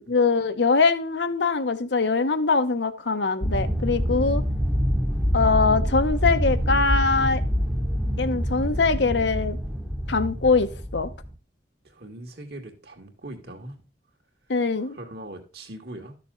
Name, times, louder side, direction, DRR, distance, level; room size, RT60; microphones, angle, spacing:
voice 1, 0.1-4.4 5.3-7.4 8.2-9.6 10.1-11.1 14.5-15.0, left 4 dB, 75° left, 0.9 m, -22 dB
sound 1, 3.4-11.3, equal, 5° right, 0.9 m, -26 dB
voice 2, 11.8-13.8 14.8-16.2, right 1 dB, 65° right, 2.2 m, -40 dB
12.5 x 6.8 x 3.8 m
head